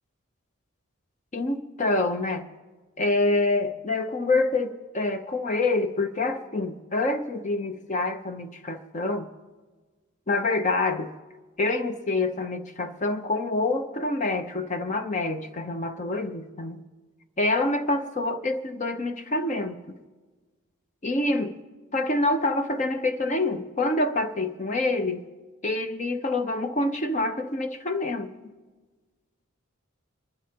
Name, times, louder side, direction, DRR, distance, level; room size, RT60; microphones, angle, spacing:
voice 1, 1.3-2.5 3.0-9.3 10.3-11.1 11.6-16.8 17.4-19.8 21.0-21.6 21.9-25.2 25.6-28.3, left 2 dB, 35° left, 7 dB, 0.7 m, -26 dB
26.5 x 12.0 x 2.9 m, 1.3 s
head